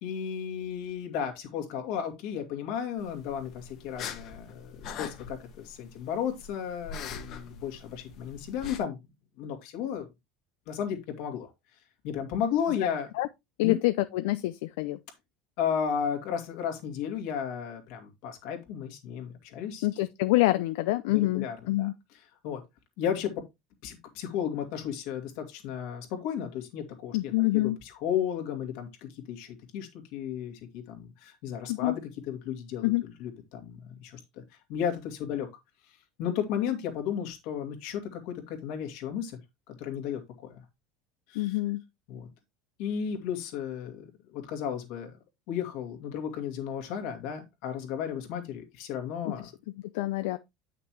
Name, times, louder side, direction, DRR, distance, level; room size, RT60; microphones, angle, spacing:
voice 1, 0.0-5.4 5.6-9.0 9.4-10.1 10.7-11.5 12.0-13.1 13.6-13.8 15.6-19.9 21.1-21.9 22.4-22.6 23.0-23.4 23.8-32.0 32.3-32.9 33.2-34.2 34.7-35.5 36.2-39.4 39.7-40.6 41.3-41.6 42.1-42.3 42.8-45.1 45.5-49.5, left 8 dB, 60° left, 2.2 m, -34 dB
sound 1, 3.0-8.8, left 6 dB, 40° left, 1.3 m, -43 dB
voice 2, 13.6-15.0 19.8-21.9 27.1-27.8 31.7-32.0 32.8-33.0 41.3-41.8 49.3-49.4 49.9-50.4, left 18 dB, 80° left, 0.5 m, -26 dB
9.1 x 5.9 x 3.0 m
cardioid pair, 160°, 0 cm